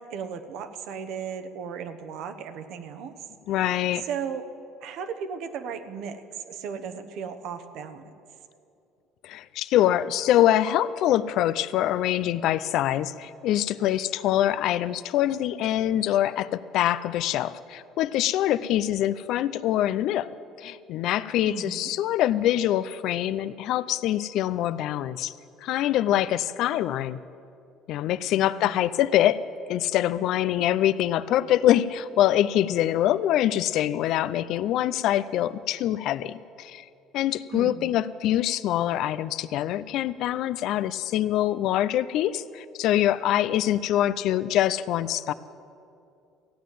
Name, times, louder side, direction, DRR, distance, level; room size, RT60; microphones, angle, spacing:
voice 1, 0.0-3.1 4.0-4.4 4.8-8.0 21.5-21.9 28.5-28.8 37.5-38.0, right 7 dB, 70° right, 10 dB, 1.0 m, -36 dB
voice 2, 3.5-4.0 9.2-20.3 20.6-25.3 25.6-27.2 27.9-36.8 37.1-45.3, left 12 dB, 65° left, 15 dB, 0.5 m, -24 dB
15.5 x 9.2 x 7.6 m, 2.6 s
supercardioid pair, 85°, 0 cm